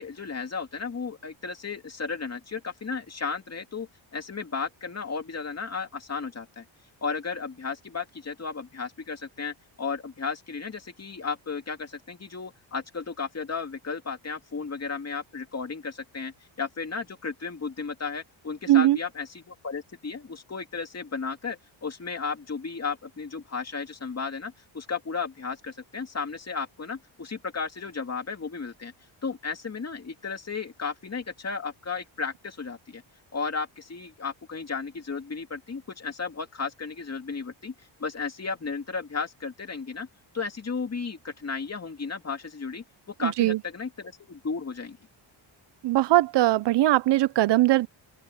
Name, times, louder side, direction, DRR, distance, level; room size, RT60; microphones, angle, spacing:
voice 1, 0.0-6.6 7.0-28.9 29.2-33.0 33.3-40.1 40.3-42.8 43.2-45.0, left 5 dB, 30° left, 2.6 m, -34 dB
voice 2, 43.2-43.6 45.8-47.9, right 15 dB, 60° right, 0.6 m, -20 dB
open air
cardioid pair, 115°, 47 cm